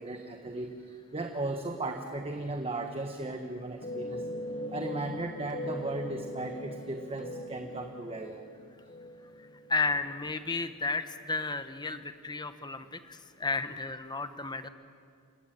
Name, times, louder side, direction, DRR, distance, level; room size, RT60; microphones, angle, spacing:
voice 1, 0.0-4.2 4.7-8.4, right 2 dB, 25° right, 4 dB, 1.3 m, -36 dB
sound 1, 3.8-9.9, left 1 dB, 40° left, 1.6 m, -40 dB
voice 2, 9.7-14.7, left 3 dB, 20° left, 10 dB, 1.0 m, -33 dB
28.5 x 16.0 x 9.1 m, 2.3 s
head